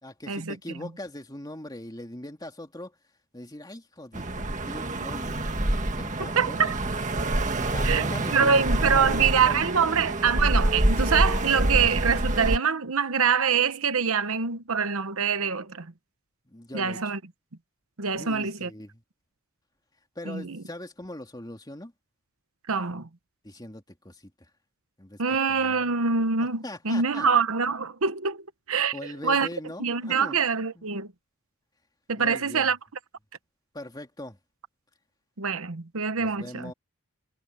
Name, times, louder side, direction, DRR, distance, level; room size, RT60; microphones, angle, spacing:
voice 1, 0.0-3.0 3.3-5.5 5.9-6.8 7.6-10.0 16.4-17.1 18.1-19.0 20.1-21.9 23.4-24.5 25.0-25.2 25.5-26.0 26.4-27.3 28.9-30.4 30.7-30.9 32.2-32.7 33.7-34.4 36.2-36.7, left 1 dB, 20° left, 2.8 m, -41 dB
sound 1, 4.1-12.6, right 1 dB, 35° right, 1.8 m, -26 dB
voice 2, 6.4-6.7 7.8-15.9 16.7-17.2 18.0-18.7 20.3-20.6 22.7-23.1 25.2-28.4 28.7-29.0 29.2-29.5 29.8-31.1 32.1-32.8 35.4-36.7, right 6 dB, 75° right, 1.0 m, -25 dB
head